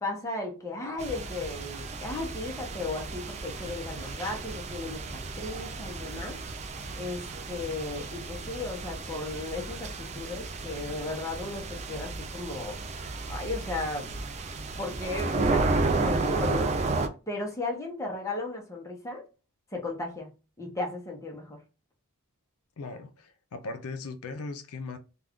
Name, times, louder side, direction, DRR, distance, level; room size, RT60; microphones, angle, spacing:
voice 1, 0.0-6.4 7.0-12.8 13.3-14.1 14.8-16.7 17.3-19.2 19.7-20.3 20.6-21.6, left 2 dB, 15° left, 0.7 m, -35 dB
sound 1, 1.0-17.1, right 3 dB, 30° right, 0.3 m, -33 dB
voice 2, 22.8-25.0, left 3 dB, 70° left, 0.5 m, -38 dB
2.4 x 2.3 x 3.4 m
head